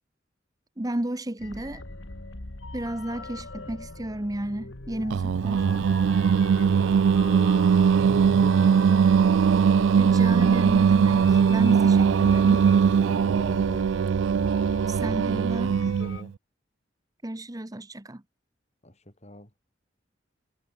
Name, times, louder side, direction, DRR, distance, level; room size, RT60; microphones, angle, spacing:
voice 1, 0.8-1.8 2.7-5.6 10.0-12.7 14.9-15.7 17.2-18.2, right 1 dB, 20° right, 1.0 m, -32 dB
sound 1, 1.4-16.2, left 2 dB, 70° left, 1.9 m, -39 dB
Singing, 5.1-16.3, right 6 dB, 70° right, 0.3 m, -20 dB
voice 2, 6.7-7.7 8.0-11.1 12.0-12.4 13.0-13.9 15.3-16.3 18.8-19.5, left 1 dB, 35° left, 7.6 m, -44 dB
head